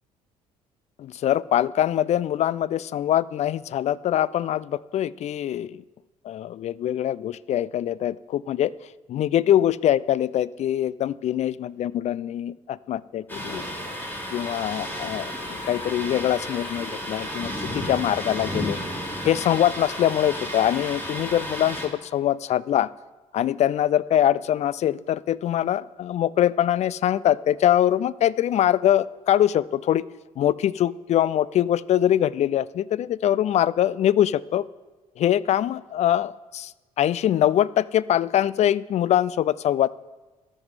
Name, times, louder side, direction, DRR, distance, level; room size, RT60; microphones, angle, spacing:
voice 1, 1.0-5.8 6.2-8.7 9.1-13.6 14.3-18.8 19.3-22.9 23.3-30.0 30.4-34.6 35.2-36.7 37.0-39.9, left 11 dB, 40° left, 21 dB, 0.4 m, -23 dB
Thunder, 13.3-21.9, equal, 10° left, 3.0 m, -32 dB
13.0 x 7.4 x 4.9 m, 1.2 s
figure-of-eight pair, 50°, 19 cm